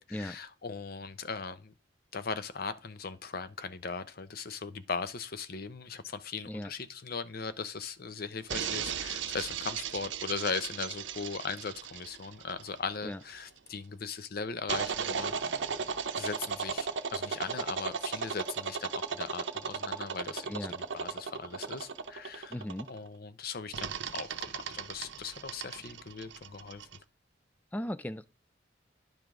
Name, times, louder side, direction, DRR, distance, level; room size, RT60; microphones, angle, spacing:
voice 1, 0.0-1.7 2.1-15.5 16.1-20.5 20.9-22.5 22.9-26.9, left 5 dB, 50° left, 0.7 m, -39 dB
sound 1, 8.5-13.4 14.7-23.1 23.7-27.0, right 6 dB, 75° right, 0.7 m, -36 dB
voice 2, 22.5-22.9 27.7-28.3, left 1 dB, 10° left, 0.3 m, -37 dB
10.5 x 5.0 x 3.7 m
head